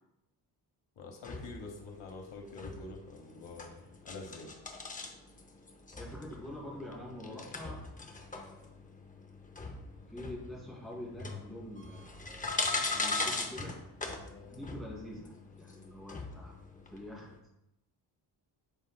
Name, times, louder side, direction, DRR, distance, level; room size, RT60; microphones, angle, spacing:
voice 1, 1.0-4.5, left 3 dB, 80° left, 3 dB, 1.2 m, -46 dB
sound 1, 1.2-17.4, left 3 dB, 20° left, 0.6 m, -40 dB
voice 2, 6.0-7.8 8.3-8.8 10.1-12.2 12.9-13.8 14.5-16.5 16.9-17.3, left 1 dB, ahead, -7 dB, 2.5 m, -45 dB
12.0 x 4.3 x 2.2 m, 0.89 s
wide cardioid pair, 175°, 43 cm